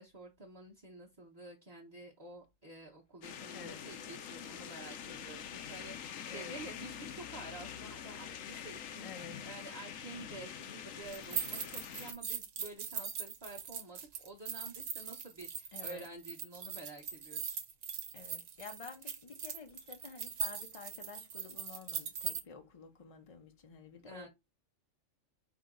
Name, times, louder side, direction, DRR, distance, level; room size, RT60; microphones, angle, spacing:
voice 1, 0.0-17.4 24.0-24.3, right 2 dB, 20° right, 0.8 m, -50 dB
sound 1, 3.2-12.1, left 8 dB, 85° left, 1.1 m, -45 dB
voice 2, 3.5-3.9 6.2-6.6 9.0-9.5 15.7-16.1 18.1-24.3, left 5 dB, 45° left, 0.4 m, -50 dB
sound 2, 11.1-22.4, right 7 dB, 85° right, 1.2 m, -41 dB
4.8 x 2.8 x 3.8 m
omnidirectional pair, 1.3 m